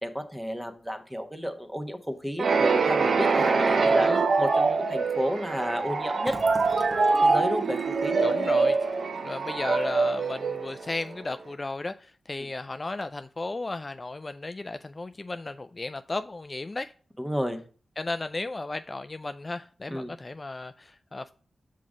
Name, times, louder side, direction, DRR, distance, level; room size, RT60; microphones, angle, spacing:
voice 1, 0.0-6.3 7.2-8.4 17.2-17.6 19.9-20.1, equal, 5° right, 1.1 m, -32 dB
sound 1, 2.4-11.1, right 4 dB, 65° right, 0.7 m, -24 dB
voice 2, 3.8-4.2 8.2-8.8 9.2-16.9 18.0-21.3, left 2 dB, 35° left, 0.3 m, -34 dB
Fill (with liquid), 6.2-9.9 10.2-10.4 10.7-11.3, right 1 dB, 30° right, 1.1 m, -45 dB
5.8 x 3.7 x 5.1 m
cardioid pair, 50°, 0 cm